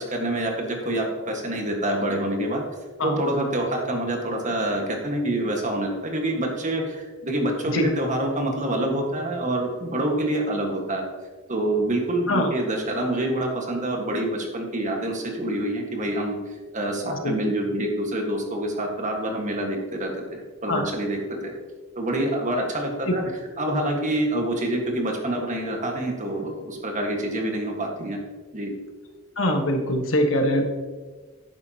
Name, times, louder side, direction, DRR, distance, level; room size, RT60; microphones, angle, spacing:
voice 1, 0.0-2.6 3.0-11.1 11.5-16.4 16.7-21.5 21.9-23.2 23.6-28.2 28.5-28.7, right 1 dB, 40° right, 2 dB, 1.7 m, -26 dB
voice 2, 29.4-30.7, left 1 dB, 70° left, 3 dB, 1.5 m, -23 dB
11.0 x 9.7 x 3.0 m, 1.4 s
head